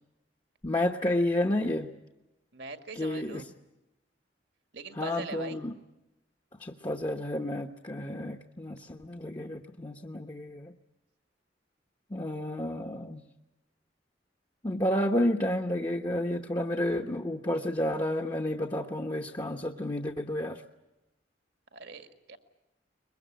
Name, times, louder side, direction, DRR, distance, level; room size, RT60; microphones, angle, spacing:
voice 1, 0.6-1.9 3.0-3.4 5.0-5.7 6.6-10.7 12.1-13.2 14.6-20.6, left 1 dB, 25° left, 4 dB, 0.9 m, -31 dB
voice 2, 2.5-3.5 4.7-5.6 21.7-22.4, right 3 dB, 75° right, 7 dB, 2.0 m, -42 dB
23.0 x 21.5 x 9.1 m, 0.99 s
head